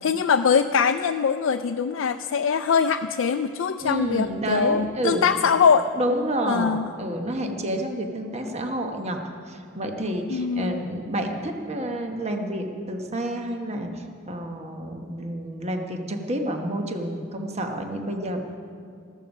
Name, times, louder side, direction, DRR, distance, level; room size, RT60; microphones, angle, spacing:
voice 1, 0.0-5.9 6.5-6.9 10.3-10.8, left 6 dB, 70° left, 7 dB, 0.4 m, -22 dB
voice 2, 3.8-5.3 6.0-9.2 9.5-18.4, right 1 dB, 30° right, 4 dB, 1.1 m, -29 dB
14.5 x 14.0 x 5.3 m, 2.2 s
head